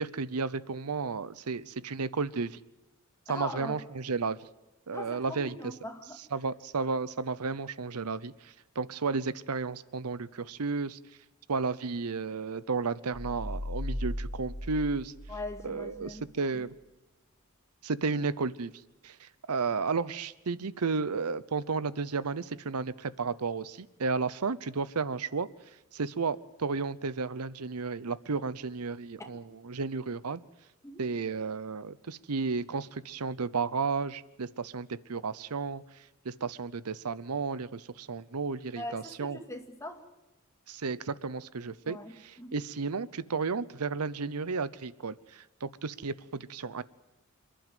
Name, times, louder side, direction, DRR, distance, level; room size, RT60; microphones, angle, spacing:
voice 1, 0.0-2.6 3.3-4.5 4.9-5.7 6.3-11.0 11.5-15.1 15.6-16.7 17.8-18.7 19.0-25.5 25.9-30.4 31.0-35.8 36.2-39.4 40.7-46.8, right 4 dB, 85° right, 18 dB, 0.8 m, -33 dB
voice 2, 3.3-3.8 4.9-6.2 15.3-16.3 30.8-31.0 38.8-40.0 41.9-42.6, left 1 dB, 15° left, 4 dB, 2.2 m, -41 dB
sound 1, 13.1-16.0, left 1 dB, 10° right, 7.1 m, -37 dB
27.5 x 11.5 x 9.3 m, 1.0 s
head